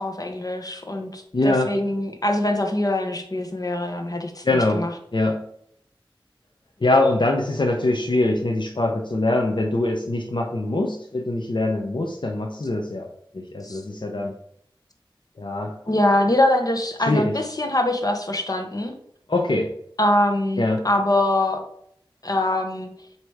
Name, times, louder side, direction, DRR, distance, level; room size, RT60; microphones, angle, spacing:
voice 1, 0.0-4.9 13.6-13.8 15.9-19.0 20.0-21.6 22.2-22.9, left 1 dB, 45° left, 5 dB, 1.1 m, -23 dB
voice 2, 1.3-1.7 4.4-4.8 5.1-5.4 6.8-13.1 13.3-14.3 15.4-15.8 17.0-17.3 19.3-19.7 20.6-20.9, left 2 dB, 65° left, 1 dB, 0.8 m, -23 dB
7.9 x 3.0 x 4.8 m, 0.69 s
wide cardioid pair, 55°, 9 cm